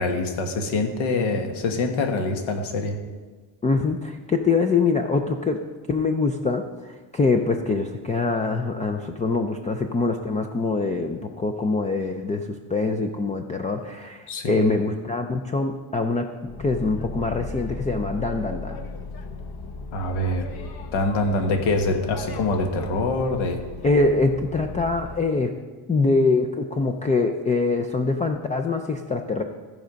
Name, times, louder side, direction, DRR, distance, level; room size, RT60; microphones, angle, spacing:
voice 1, 0.0-3.0 14.3-14.7 19.9-20.5 20.9-23.6, left 2 dB, 70° left, 5 dB, 1.5 m, -25 dB
voice 2, 3.6-5.6 5.9-16.3 16.6-18.8 23.8-25.6 25.9-29.4, left 3 dB, 15° left, 5 dB, 0.3 m, -24 dB
Boat Water vehicle, 16.4-25.2, left 3 dB, 50° left, 0.9 m, -36 dB
15.0 x 5.3 x 5.1 m, 1.4 s
cardioid pair, 130°, 50 cm